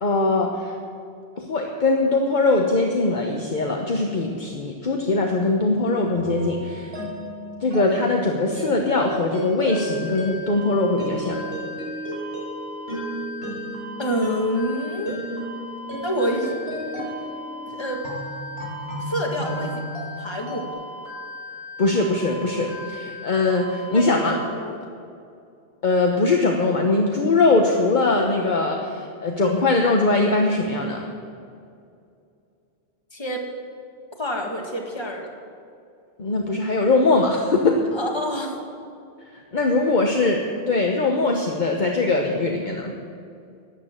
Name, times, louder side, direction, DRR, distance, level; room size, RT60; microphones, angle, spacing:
voice 1, 0.0-0.7 1.4-6.9 7.6-11.4 21.8-24.4 25.8-31.1 36.2-37.8 39.5-43.0, left 3 dB, 50° left, 1 dB, 1.1 m, -21 dB
sound 1, 6.1-20.7, equal, 85° right, 4.3 m, -34 dB
sound 2, 9.7-24.3, left 2 dB, 70° right, 3.3 m, -38 dB
voice 2, 14.0-15.2 16.0-16.5 16.8-17.0 17.7-18.0 19.0-19.8 20.2-20.8 23.9-24.8 33.1-33.5 34.2-35.3 37.9-38.5, equal, 25° left, 0 dB, 1.8 m, -27 dB
13.5 x 8.9 x 7.4 m, 2.5 s
omnidirectional pair, 1.0 m